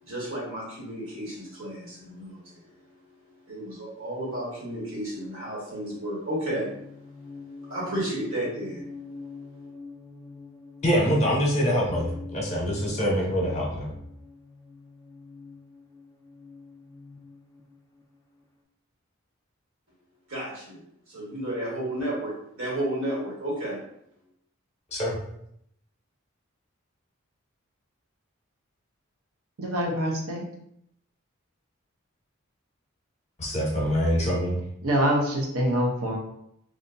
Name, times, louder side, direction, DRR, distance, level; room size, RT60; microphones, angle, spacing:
voice 1, 0.0-2.6 3.1-3.2 3.4-6.8 7.6-8.9 20.3-23.8, right 1 dB, 65° right, -5 dB, 1.5 m, -32 dB
sound 1, 6.4-18.4, left 4 dB, 15° left, 0.3 m, -45 dB
voice 2, 10.8-14.0 24.9-25.2 33.4-34.6, equal, 30° left, -2 dB, 0.8 m, -25 dB
voice 3, 29.6-30.4 34.8-36.2, equal, 85° right, -1 dB, 0.7 m, -25 dB
2.6 x 2.4 x 3.7 m, 0.73 s
head